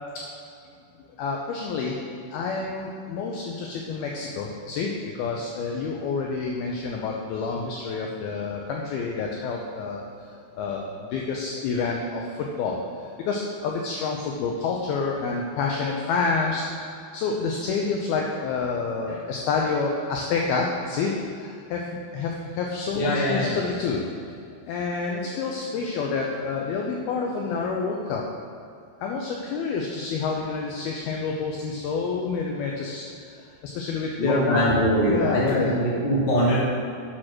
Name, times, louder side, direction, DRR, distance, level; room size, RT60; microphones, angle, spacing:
voice 1, 1.2-2.0 2.3-10.0 10.6-16.7 17.1-24.2 24.7-28.3 29.0-33.0 33.4-35.8, left 4 dB, 85° left, -1 dB, 2.2 m, -28 dB
voice 2, 22.9-23.6 34.2-36.6, equal, 25° left, -8 dB, 1.3 m, -23 dB
8.6 x 6.1 x 6.3 m, 2.5 s
omnidirectional pair, 5.3 m